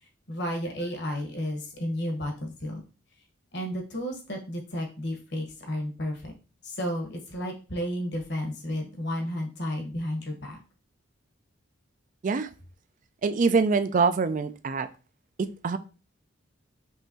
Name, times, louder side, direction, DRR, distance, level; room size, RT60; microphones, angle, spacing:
voice 1, 0.3-2.9 3.5-6.3 6.6-10.6, equal, 60° left, 2 dB, 1.2 m, -32 dB
voice 2, 13.2-14.9 15.4-15.8, right 4 dB, 40° right, 11 dB, 0.3 m, -24 dB
5.4 x 3.0 x 2.8 m, 0.33 s
head